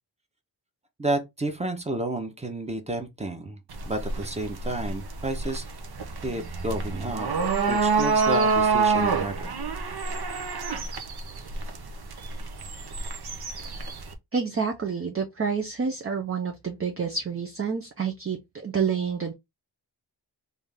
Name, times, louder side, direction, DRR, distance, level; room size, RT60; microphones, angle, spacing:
voice 1, 1.0-3.6 3.8-5.6 6.2-7.3 7.7-9.5, right 2 dB, 15° right, 0.9 m, -31 dB
sound 1, 3.7-14.1, right 4 dB, 65° right, 0.8 m, -27 dB
voice 2, 14.3-19.3, right 6 dB, 35° right, 0.6 m, -28 dB
3.6 x 2.7 x 3.5 m
wide cardioid pair, 100°, 42 cm